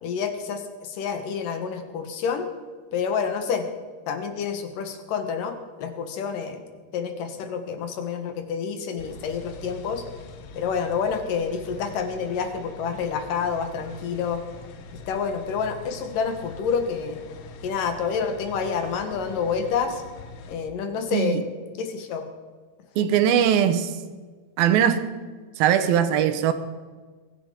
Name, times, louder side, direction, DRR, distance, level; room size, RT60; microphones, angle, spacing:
voice 1, 0.0-2.4 2.9-3.7 4.1-6.6 6.9-10.0 10.5-14.4 15.1-17.2 17.6-20.0 20.5-21.4 21.8-22.2 23.0-23.1, left 6 dB, 65° left, 7 dB, 2.9 m, -28 dB
sound 1, 9.0-20.6, left 2 dB, 90° left, 1.4 m, -43 dB
voice 2, 21.1-21.4 23.0-24.0 24.6-25.0 25.6-26.5, right 9 dB, 75° right, 10 dB, 2.7 m, -20 dB
22.5 x 11.0 x 5.1 m, 1.4 s
omnidirectional pair, 4.6 m